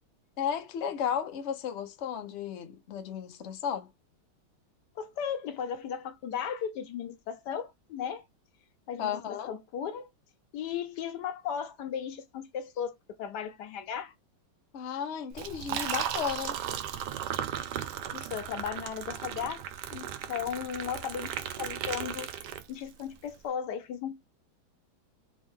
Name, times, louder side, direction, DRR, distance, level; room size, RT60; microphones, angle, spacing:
voice 1, 0.4-3.9 9.0-9.5 14.7-16.6, left 8 dB, 85° left, 0.6 m, -34 dB
voice 2, 5.0-8.2 8.9-10.1 10.5-14.1 15.7-15.8 18.1-19.6 19.9-21.3 21.6-22.3 22.7-24.2, left 8 dB, 70° left, 1.0 m, -36 dB
Liquid, 15.3-23.0, right 10 dB, 75° right, 1.0 m, -36 dB
3.6 x 3.2 x 3.5 m
omnidirectional pair, 2.3 m